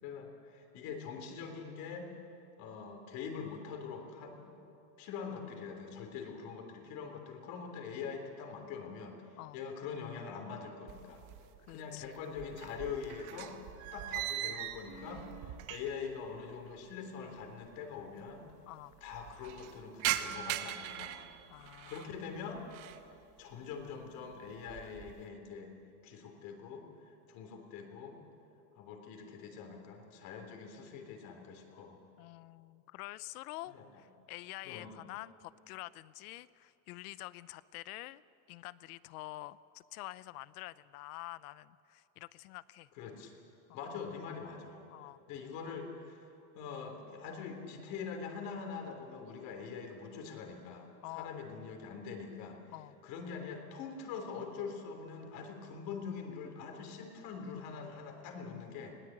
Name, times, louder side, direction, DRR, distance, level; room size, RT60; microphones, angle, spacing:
voice 1, 0.0-2.1 2.6-4.5 5.0-11.2 11.7-13.5 13.9-18.5 19.0-21.3 21.9-22.6 23.4-25.7 26.0-28.2 28.7-32.0 33.7-33.9 34.6-35.0 43.0-43.3 43.7-44.8 45.3-46.2 46.5-52.6 53.0-58.9, left 6 dB, 45° left, 4 dB, 3.4 m, -44 dB
sound 1, 10.9-11.8 12.0-16.1 16.4-16.5 17.4-17.5 17.6-17.7 18.0-18.5 18.9-22.1 22.6-23.1 23.5-23.9 24.3-25.2, right 13 dB, 40° right, 1.0 m, -40 dB
voice 2, 11.7-12.2 15.5-15.6 18.7-19.0 21.5-22.1 32.2-38.2 38.5-42.9 43.7-43.8 44.9-45.2 51.0-51.3 52.7-53.0, left 18 dB, 70° left, 18 dB, 0.7 m, -47 dB
20.5 x 17.5 x 8.7 m, 2.7 s
supercardioid pair, 165°, 46 cm